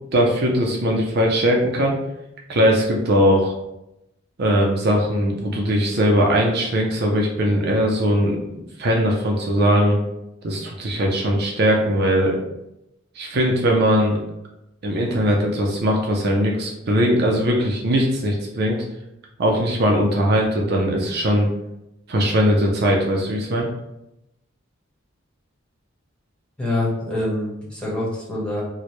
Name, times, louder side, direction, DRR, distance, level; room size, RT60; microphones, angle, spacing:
voice 1, 0.1-2.0 2.5-3.5 4.4-8.4 8.8-10.0 10.4-12.4 13.2-14.2 14.8-18.8 19.4-21.5 22.1-23.7, equal, 55° right, 0 dB, 0.5 m, -20 dB
voice 2, 26.6-28.6, left 1 dB, 5° left, -6 dB, 1.1 m, -25 dB
4.5 x 2.1 x 3.1 m, 0.88 s
head